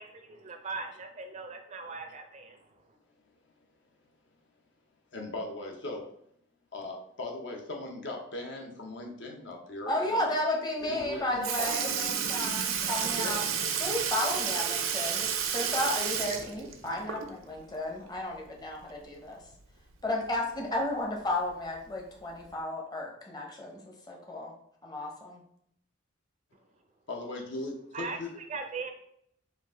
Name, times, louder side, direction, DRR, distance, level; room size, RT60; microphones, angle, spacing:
voice 1, 0.0-2.7 27.9-28.9, right 4 dB, 35° right, 5 dB, 0.4 m, -39 dB
voice 2, 5.1-6.1 6.7-10.3 10.8-11.8 13.1-13.4 27.1-28.3, left 2 dB, 60° left, 1 dB, 0.8 m, -39 dB
voice 3, 9.9-13.4 13.8-19.4 20.0-24.5 24.8-25.4, left 1 dB, 20° left, 0 dB, 0.8 m, -33 dB
Sink (filling or washing) / Liquid, 11.0-11.1 11.4-17.5 17.9-18.0 19.5-19.6 20.6-20.7 21.5-21.7 22.5-22.6, right 7 dB, 80° right, 0.6 m, -31 dB
4.6 x 2.5 x 3.6 m, 0.68 s
head